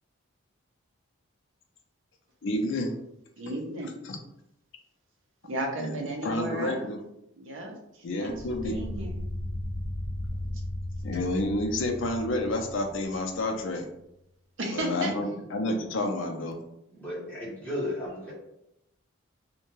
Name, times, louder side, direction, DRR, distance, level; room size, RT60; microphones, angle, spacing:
voice 1, 2.4-2.9 4.1-4.2 5.8-6.0 6.2-7.0 8.0-8.8 11.0-13.8 14.7-16.6, left 1 dB, 60° left, 3 dB, 0.5 m, -29 dB
voice 2, 3.4-3.9 5.4-6.9 7.4-9.3 10.5-10.6 14.6-15.1, right 1 dB, 70° right, 1 dB, 0.6 m, -35 dB
sound 1, 8.3-13.5, left 1 dB, 35° right, 1.2 m, -36 dB
voice 3, 16.9-18.3, left 1 dB, 10° left, -8 dB, 0.9 m, -34 dB
2.6 x 2.2 x 3.0 m, 0.82 s
head